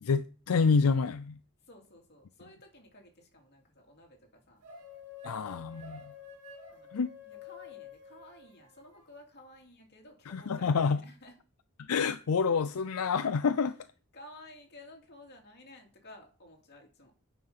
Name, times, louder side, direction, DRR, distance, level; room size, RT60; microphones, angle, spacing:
voice 1, 0.0-1.4 5.2-6.0 6.9-7.2 10.3-11.0 11.9-13.8, left 5 dB, 80° left, 0.5 m, -28 dB
voice 2, 1.7-4.6 6.7-11.3 14.1-17.1, left 1 dB, 50° left, 2.8 m, -54 dB
sound 1, 4.6-9.1, left 5 dB, 90° right, 2.3 m, -49 dB
9.1 x 5.7 x 5.6 m
head